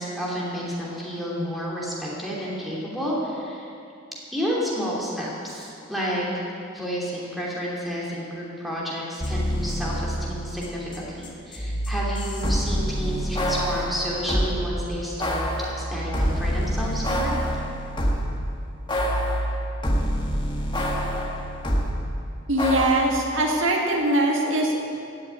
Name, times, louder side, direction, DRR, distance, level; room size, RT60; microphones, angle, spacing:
voice 1, 0.0-3.7 4.3-6.3 6.7-15.5 15.8-17.3, equal, ahead, -6 dB, 3.1 m, -30 dB
sound 1, 9.2-11.0 11.2-14.6 15.2-18.4 18.9-21.9 22.6-22.9, equal, 25° left, 1.8 m, -26 dB
voice 2, 22.5-24.8, right 1 dB, 75° right, 0 dB, 1.9 m, -22 dB
16.0 x 7.5 x 9.3 m, 2.5 s
head